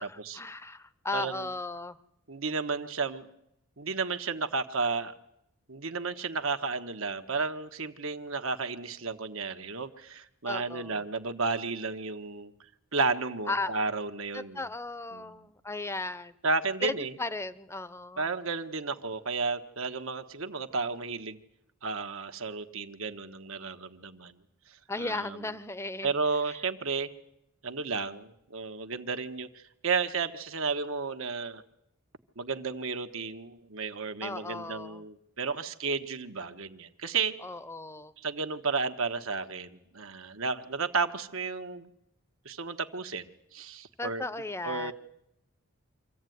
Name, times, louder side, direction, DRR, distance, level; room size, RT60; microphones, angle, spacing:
voice 1, 0.0-2.0 10.4-11.0 13.5-13.8 14.3-16.3 16.8-18.3 24.9-26.1 26.5-26.6 34.2-35.0 37.4-38.1 44.0-44.9, left 2 dB, 10° left, 15 dB, 0.8 m, -36 dB
voice 2, 1.1-1.5 2.3-3.3 3.8-5.1 5.7-12.5 12.9-14.7 15.1-15.3 16.4-17.1 18.2-21.4 21.8-24.3 24.7-25.5 26.0-27.1 27.6-31.6 32.4-37.3 38.2-41.9 42.4-44.2 44.6-44.9, right 4 dB, 65° right, 8 dB, 1.4 m, -33 dB
25.5 x 15.0 x 9.4 m, 0.80 s
head